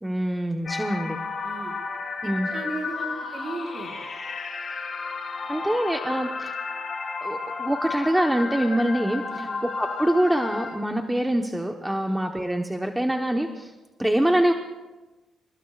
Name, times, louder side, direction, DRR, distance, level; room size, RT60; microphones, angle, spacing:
voice 1, 0.0-1.2 2.2-2.5 5.5-6.5 7.2-9.5 9.8-13.7 14.0-14.5, right 1 dB, 5° right, 3 dB, 1.1 m, -25 dB
sound 1, 0.6-10.7, left 4 dB, 45° left, 6.0 m, -32 dB
voice 2, 1.4-1.7 2.5-3.9 9.3-9.6 12.1-12.2, right 2 dB, 45° right, 0 dB, 5.5 m, -35 dB
27.5 x 19.5 x 2.5 m, 1.1 s
cardioid pair, 90°, 0 cm